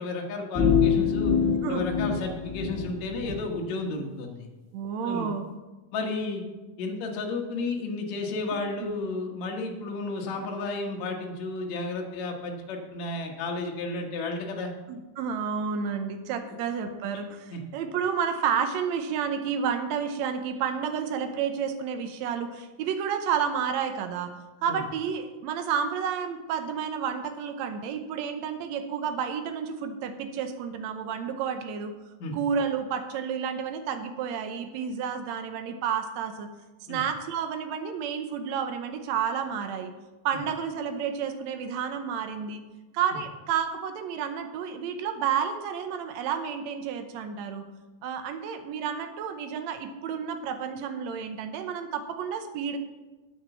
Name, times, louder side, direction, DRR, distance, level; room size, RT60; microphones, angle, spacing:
voice 1, 0.0-1.3 1.7-4.5 5.0-5.3 5.9-6.4 6.8-14.7 17.5-17.6 24.7-24.8 32.2-32.3 36.9-37.0, left 3 dB, 55° left, 1 dB, 2.4 m, -32 dB
sound 1, 0.5-3.4, left 6 dB, 35° left, 1.3 m, -25 dB
voice 2, 4.7-5.4 8.8-8.9 14.9-24.3 24.6-31.9 32.3-36.5 36.9-39.9 40.2-42.6 42.9-47.7 48.0-52.8, right 7 dB, 80° right, 7 dB, 1.6 m, -30 dB
9.1 x 8.0 x 7.0 m, 1.2 s
omnidirectional pair, 4.3 m